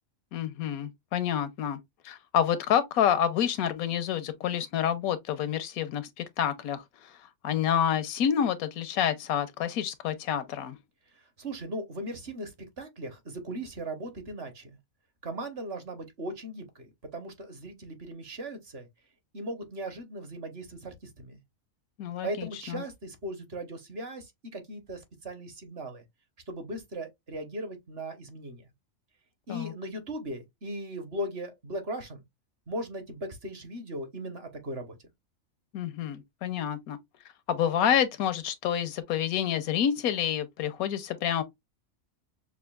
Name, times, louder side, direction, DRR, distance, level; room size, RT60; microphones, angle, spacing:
voice 1, 0.3-1.8 2.0-7.2 7.4-10.8 22.0-22.8 29.5-29.7 35.7-37.0 37.5-41.4, left 9 dB, 90° left, 1.1 m, -28 dB
voice 2, 11.1-14.8 15.2-18.9 19.3-21.4 22.2-26.0 26.5-28.6 29.5-32.2 32.7-35.0, right 1 dB, 50° right, 1.2 m, -38 dB
6.0 x 2.4 x 2.3 m
omnidirectional pair, 1.5 m